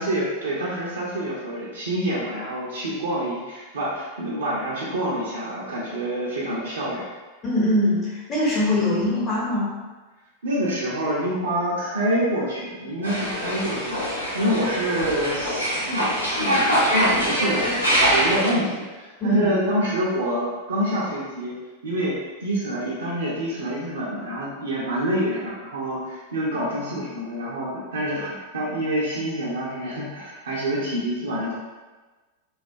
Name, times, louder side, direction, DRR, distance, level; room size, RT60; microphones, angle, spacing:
voice 1, 0.0-7.1 8.9-9.0 10.4-21.5 21.8-22.1 22.4-31.5, right 1 dB, 65° right, -6 dB, 0.5 m, -27 dB
voice 2, 7.4-9.7 19.2-19.5, left 1 dB, 25° left, -6 dB, 0.9 m, -22 dB
sound 1, 13.0-18.5, equal, 85° left, 0.5 m, -23 dB
2.2 x 2.1 x 2.6 m, 1.3 s
figure-of-eight pair, 90°, 0 cm